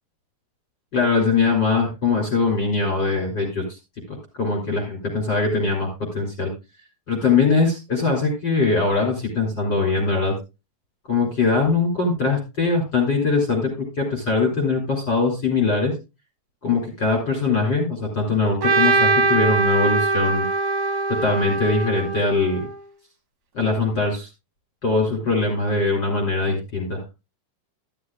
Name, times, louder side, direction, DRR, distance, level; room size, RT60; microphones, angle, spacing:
voice 1, 0.9-3.8 4.1-6.5 7.1-10.3 11.1-15.9 16.6-20.4 21.1-22.7 23.5-24.3 24.8-27.0, left 4 dB, 30° left, 2 dB, 2.5 m, -22 dB
Trumpet, 18.6-22.8, right 3 dB, 55° right, 2.6 m, -22 dB
12.5 x 12.0 x 2.3 m, 0.26 s
omnidirectional pair, 5.8 m